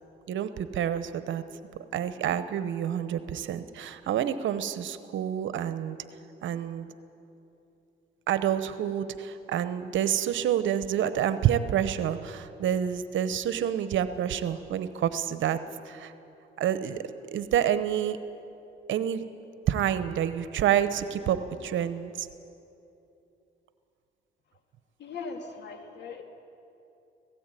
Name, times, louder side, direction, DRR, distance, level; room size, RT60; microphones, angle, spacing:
voice 1, 0.3-1.4 1.9-6.0 6.4-6.9 8.3-15.6 15.9-16.1 16.6-18.2 18.9-19.3 19.7-22.3, right 10 dB, 75° right, 12 dB, 0.9 m, -28 dB
voice 2, 25.0-26.2, left 4 dB, 60° left, 4 dB, 2.4 m, -39 dB
18.0 x 16.5 x 9.1 m, 2.8 s
cardioid pair, 90°, 20 cm